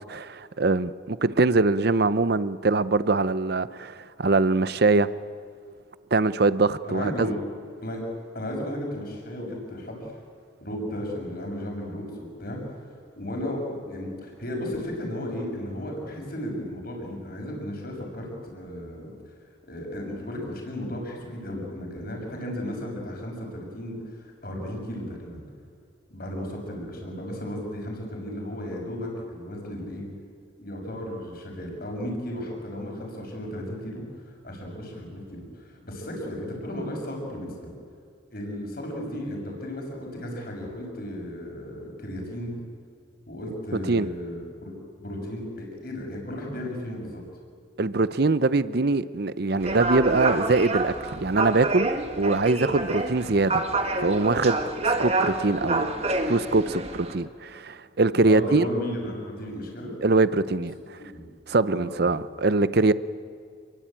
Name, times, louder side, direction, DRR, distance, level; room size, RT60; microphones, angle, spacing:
voice 1, 0.1-5.1 6.1-7.3 43.9-44.1 47.8-51.9 52.2-53.6 54.0-55.9 56.3-58.7 60.0-61.0 61.5-62.9, right 3 dB, 55° right, 0.7 m, -23 dB
voice 2, 6.8-7.4 7.8-10.1 10.6-12.6 13.2-19.1 19.7-25.4 26.1-30.1 30.6-34.0 34.4-37.7 38.3-42.5 43.3-44.7 45.0-47.2 58.2-59.9 61.1-61.3 61.7-62.1, left 1 dB, 50° left, 6.8 m, -34 dB
sound 1, 49.6-57.2, right 2 dB, 35° right, 2.1 m, -28 dB
28.0 x 22.5 x 8.9 m
head